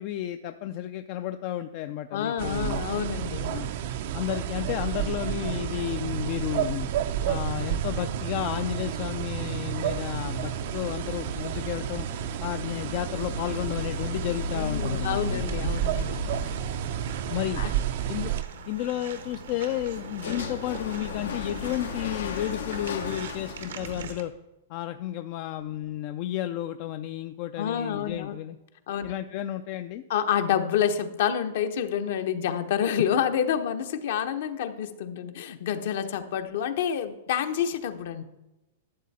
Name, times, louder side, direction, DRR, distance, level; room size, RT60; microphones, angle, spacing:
voice 1, 0.0-2.8 3.5-3.7 4.1-6.9 7.3-12.1 12.4-15.7 17.3-17.6 18.1-18.3 18.7-24.3 24.7-28.6 29.0-30.0, left 13 dB, 45° left, 8 dB, 0.4 m, -32 dB
voice 2, 2.1-3.6 14.5-16.2 17.6-17.7 27.6-28.3 28.9-29.1 30.1-38.2, left 9 dB, 65° left, 8 dB, 1.0 m, -28 dB
sound 1, 2.4-18.4, right 10 dB, 55° right, 0.6 m, -31 dB
sound 2, 10.1-24.1, left 4 dB, 85° left, 1.1 m, -37 dB
sound 3, 12.0-24.2, right 6 dB, 85° right, 1.3 m, -44 dB
12.5 x 7.5 x 4.2 m, 0.98 s
hypercardioid pair, 150°, 0 cm